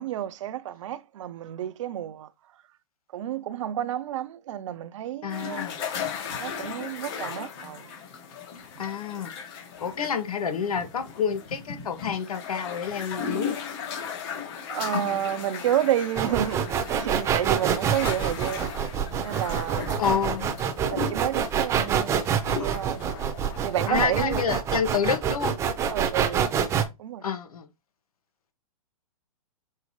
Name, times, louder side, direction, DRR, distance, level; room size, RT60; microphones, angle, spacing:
voice 1, 0.0-2.3 3.1-5.7 6.4-7.9 8.8-8.9 14.7-18.7 19.2-19.9 20.9-22.2 22.6-23.0 23.6-24.4 25.9-26.5 27.0-27.2, right 11 dB, 60° right, 0.6 m, -30 dB
voice 2, 5.2-5.8 8.8-9.3 9.8-13.6 20.0-20.5 23.9-25.6 27.2-27.7, left 7 dB, 85° left, 1.8 m, -28 dB
sound 1, 5.3-24.1, left 7 dB, 40° left, 2.7 m, -37 dB
sound 2, 16.2-26.8, right 7 dB, 15° right, 0.7 m, -26 dB
6.5 x 4.6 x 3.1 m
hypercardioid pair, 155°, 18 cm